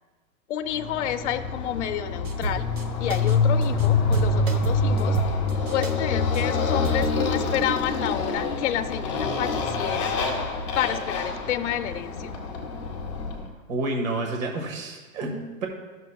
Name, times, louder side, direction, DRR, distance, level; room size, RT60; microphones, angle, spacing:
voice 1, 0.5-2.7 3.0-5.2 5.7-10.1 10.7-12.3, left 11 dB, 55° left, 10 dB, 0.5 m, -29 dB
Motorcycle, 0.8-13.5, left 3 dB, 20° left, 0.7 m, -26 dB
sound 1, 2.2-2.8 3.1-3.4 3.6-3.9 4.1-5.9 6.3-6.4 6.8-7.2, right 2 dB, 45° right, 1.1 m, -31 dB
voice 2, 13.7-15.7, right 2 dB, 70° right, 2 dB, 1.6 m, -29 dB
14.0 x 6.5 x 2.3 m, 1.4 s
hypercardioid pair, 180°, 42 cm